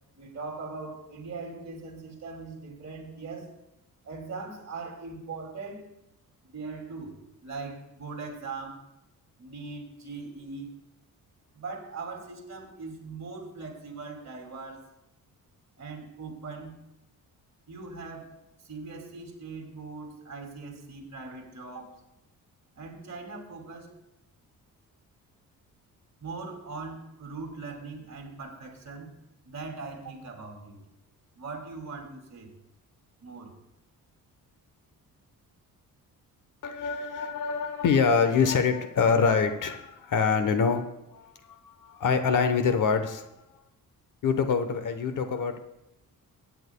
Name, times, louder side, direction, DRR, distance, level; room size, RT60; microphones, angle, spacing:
voice 1, 0.1-3.5 4.0-5.9 6.5-8.9 9.4-10.8 11.5-14.9 15.8-16.8 17.7-18.3 18.6-22.0 22.8-23.9 26.2-29.2 29.4-30.8 31.4-32.5 33.2-33.6, right 4 dB, 50° right, 2.4 m, -40 dB
voice 2, 36.6-43.3 44.2-45.6, left 5 dB, 60° left, 1.0 m, -25 dB
22.5 x 9.0 x 2.2 m
wide cardioid pair, 145°, 35 cm